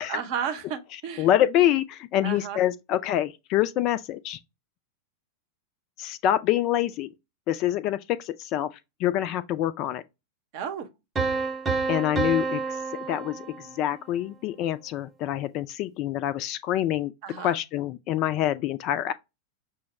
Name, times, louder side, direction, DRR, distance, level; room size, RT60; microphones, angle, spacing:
voice 1, 0.0-1.3 2.2-2.6 10.5-10.9 17.2-17.6, right 8 dB, 45° right, 0.7 m, -33 dB
voice 2, 1.2-4.4 6.0-7.1 7.5-8.7 9.0-10.0 11.9-12.8 13.1-17.1 17.4-19.1, left 12 dB, 40° left, 0.3 m, -26 dB
sound 1, 11.2-14.1, right 4 dB, 15° right, 0.8 m, -29 dB
6.0 x 2.0 x 3.1 m
figure-of-eight pair, 90°, 0 cm